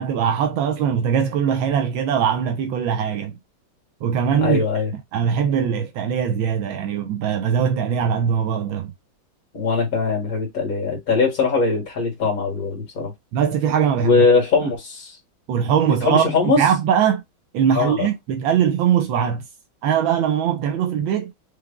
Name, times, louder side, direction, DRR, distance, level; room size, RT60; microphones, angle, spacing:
voice 1, 0.0-3.3 4.0-4.6 5.1-8.9 13.3-14.2 15.5-16.2 16.6-17.2 17.5-19.4 19.8-21.3, right 8 dB, 80° right, 1.4 m, -21 dB
voice 2, 4.4-4.9 9.5-13.1 14.0-15.1 16.0-16.6 17.7-18.1, left 4 dB, 45° left, 2.1 m, -21 dB
4.8 x 3.3 x 2.2 m
omnidirectional pair, 2.2 m